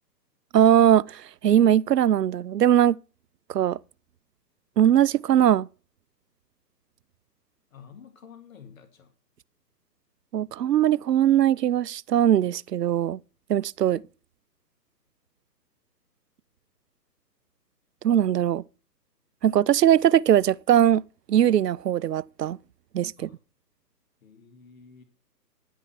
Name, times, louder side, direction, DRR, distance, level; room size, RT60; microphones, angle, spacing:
voice 1, 0.5-2.9 3.5-3.8 4.8-5.7 10.3-13.2 13.5-14.0 18.0-18.6 19.4-21.0 21.3-22.6 22.9-23.3, right 10 dB, 70° right, 0.5 m, -20 dB
voice 2, 7.7-9.1 23.2-23.4 24.2-25.0, left 6 dB, 55° left, 2.0 m, -50 dB
10.5 x 9.1 x 5.7 m
figure-of-eight pair, 140°, 50 cm